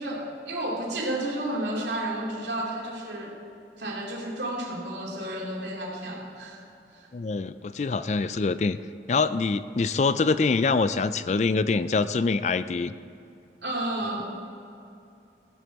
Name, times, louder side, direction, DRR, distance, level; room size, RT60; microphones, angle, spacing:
voice 1, 0.0-3.4 3.8-6.6 6.9-7.1 13.6-14.3, right 1 dB, 80° right, -2 dB, 2.7 m, -32 dB
voice 2, 7.1-8.8 9.1-12.9, left 4 dB, 40° left, 13 dB, 0.3 m, -25 dB
16.0 x 6.9 x 7.5 m, 2.6 s
head